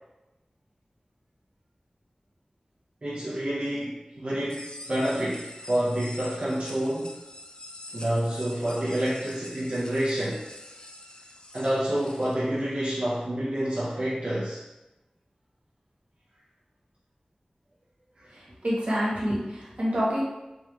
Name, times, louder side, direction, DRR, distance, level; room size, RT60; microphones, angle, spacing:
voice 1, 3.0-7.2 7.9-10.5 11.5-14.6 18.2-18.3, right 1 dB, 50° right, -8 dB, 0.6 m, -28 dB
sound 1, 4.5-12.3, left 1 dB, 35° left, 0.3 m, -45 dB
voice 2, 18.3-20.2, equal, 70° right, -7 dB, 1.1 m, -27 dB
3.4 x 2.9 x 2.3 m, 1.0 s
wide cardioid pair, 65°, 2 cm